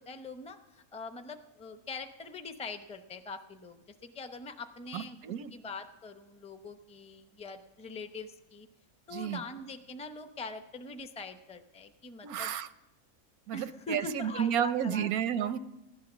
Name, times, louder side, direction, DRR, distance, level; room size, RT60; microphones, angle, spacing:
voice 1, 0.0-5.2 5.5-8.7 9.1-12.5 13.5-15.1 15.4-15.5, left 3 dB, 10° left, 7 dB, 0.4 m, -43 dB
voice 2, 4.9-5.5 9.1-9.4 12.2-12.7 13.5-15.6, right 9 dB, 90° right, 13 dB, 1.2 m, -31 dB
16.0 x 11.0 x 6.2 m, 0.99 s
omnidirectional pair, 1.5 m